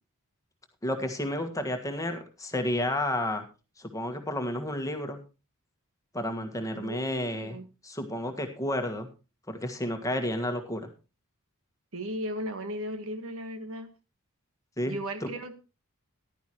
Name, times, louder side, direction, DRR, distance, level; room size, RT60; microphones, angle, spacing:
voice 1, 0.8-3.4 3.8-5.2 6.1-7.6 7.8-9.1 9.5-10.9 14.8-15.0, left 1 dB, 15° left, 6 dB, 1.6 m, -31 dB
voice 2, 6.7-7.7 11.9-13.9 14.8-15.6, equal, 65° right, 8 dB, 1.6 m, -36 dB
14.5 x 11.5 x 3.0 m, 0.30 s
head